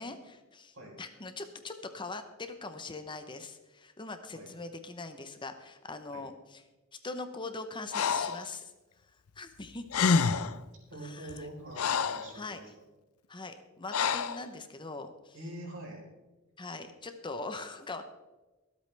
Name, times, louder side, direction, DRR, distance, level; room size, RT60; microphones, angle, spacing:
voice 1, 0.0-6.6 6.9-8.7 9.0-9.8 11.0-11.5 12.3-12.6 13.3-15.4 16.6-18.0, left 3 dB, 20° left, 8 dB, 0.8 m, -42 dB
Breathing, 7.9-8.4 9.6-9.7 9.9-10.6 11.3-12.3 13.9-14.4, left 5 dB, 80° left, 0.6 m, -28 dB
voice 2, 10.9-12.7 15.3-16.0, right 1 dB, 65° right, -1 dB, 4.1 m, -44 dB
24.5 x 8.3 x 3.4 m, 1.1 s
head